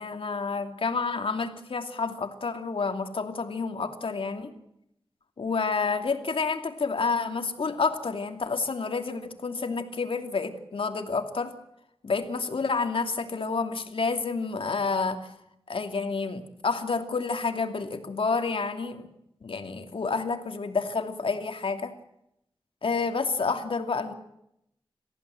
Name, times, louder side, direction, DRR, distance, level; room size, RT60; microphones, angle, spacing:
voice 1, 0.0-4.5 5.4-11.5 12.0-15.3 15.7-19.1 19.4-21.9 22.8-24.1, left 4 dB, 70° left, 6 dB, 2.7 m, -29 dB
29.0 x 15.5 x 7.9 m, 0.78 s
wide cardioid pair, 105°, 9 cm